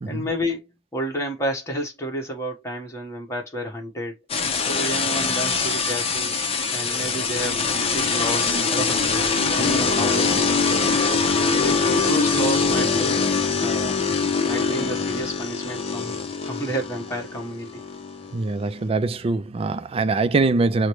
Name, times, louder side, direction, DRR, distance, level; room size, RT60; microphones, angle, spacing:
voice 1, 0.0-4.2 4.7-6.3 6.7-10.8 11.4-13.2 13.6-14.0 14.5-16.2 16.4-17.8, right 1 dB, 15° left, 1.3 m, -31 dB
sound 1, 4.3-18.8, left 4 dB, 30° left, 0.7 m, -23 dB
voice 2, 18.3-20.9, right 3 dB, 30° right, 0.3 m, -23 dB
6.3 x 2.1 x 3.0 m
head